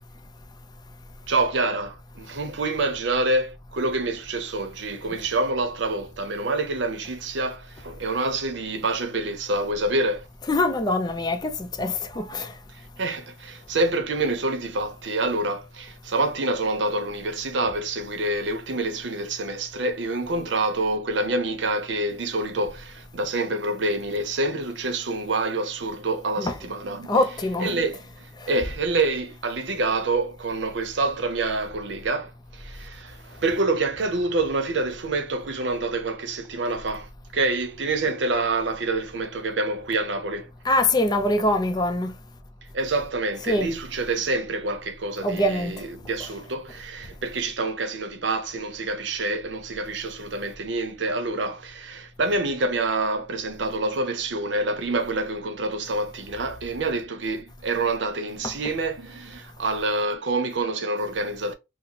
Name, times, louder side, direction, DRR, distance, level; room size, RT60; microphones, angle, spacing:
voice 1, 1.3-10.3 12.7-27.2 27.6-40.5 42.7-61.5, right 2 dB, 80° right, 0.7 m, -27 dB
voice 2, 10.5-12.5 26.4-26.5 27.1-27.7 28.4-28.5 40.7-42.1 43.5-43.7 45.2-45.8, left 1 dB, 25° left, 0.4 m, -23 dB
4.0 x 2.0 x 2.8 m
head